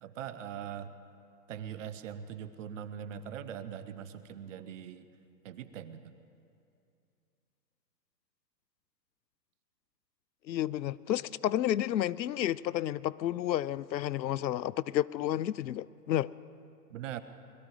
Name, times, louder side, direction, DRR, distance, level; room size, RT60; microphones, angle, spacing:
voice 1, 0.0-0.9 1.5-5.1 5.4-6.1 16.9-17.2, right 9 dB, 50° right, 12 dB, 0.9 m, -41 dB
voice 2, 10.5-16.3, left 12 dB, 85° left, 21 dB, 0.5 m, -31 dB
21.5 x 13.5 x 4.9 m, 2.6 s
hypercardioid pair, 125°, 50 cm